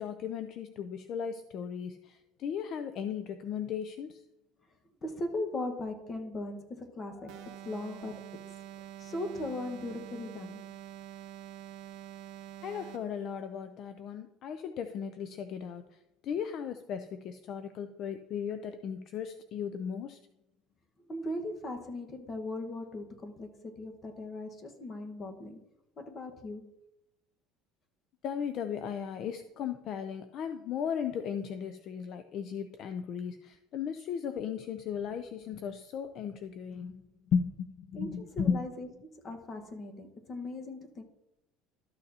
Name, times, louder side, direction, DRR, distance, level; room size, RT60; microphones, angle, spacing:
voice 1, 0.0-4.2 12.6-16.0 16.2-20.2 28.2-38.6, left 7 dB, 50° left, 10 dB, 0.4 m, -36 dB
voice 2, 5.0-8.3 9.0-10.6 21.1-25.6 26.0-26.7 37.9-38.9 39.2-41.0, left 2 dB, 30° left, 5 dB, 1.3 m, -38 dB
sound 1, 7.3-13.2, right 11 dB, 65° right, 0.8 m, -46 dB
13.0 x 6.6 x 2.8 m, 0.88 s
supercardioid pair, 125°, 0 cm